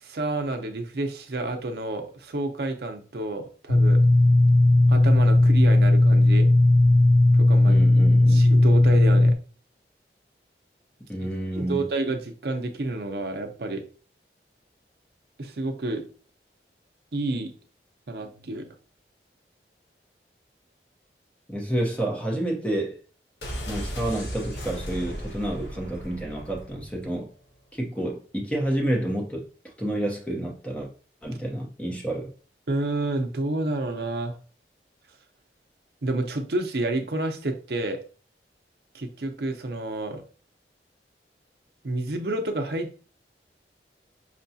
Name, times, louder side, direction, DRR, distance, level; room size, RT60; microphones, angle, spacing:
voice 1, 0.0-4.0 4.9-6.5 7.3-7.8 8.3-9.4 11.6-13.8 15.4-16.1 17.1-17.5 18.1-18.7 32.7-34.4 36.0-38.0 38.9-40.2 41.8-42.9, right 2 dB, 65° right, 0.6 m, -29 dB
sound 1, 3.7-9.3, left 2 dB, 45° left, 0.5 m, -17 dB
voice 2, 7.6-8.5 11.1-11.9 21.5-23.0 23.7-27.3 27.7-30.9 31.2-32.3, right 1 dB, 5° left, 0.8 m, -29 dB
sound 2, 23.4-27.2 27.4-27.5, equal, 80° left, 1.1 m, -36 dB
5.7 x 2.3 x 2.7 m
head